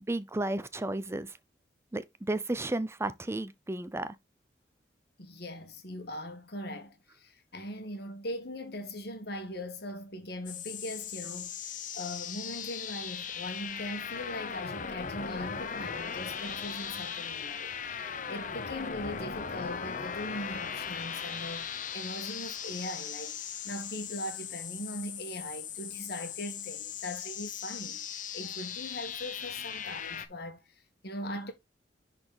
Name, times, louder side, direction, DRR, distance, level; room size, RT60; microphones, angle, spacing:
voice 1, 0.1-1.3 1.9-4.2, right 2 dB, 15° right, 0.5 m, -33 dB
voice 2, 5.2-23.4 23.6-31.5, left 1 dB, 65° left, 1.8 m, -40 dB
sound 1, 10.5-30.3, left 7 dB, 50° left, 0.8 m, -38 dB
10.5 x 4.3 x 3.4 m
head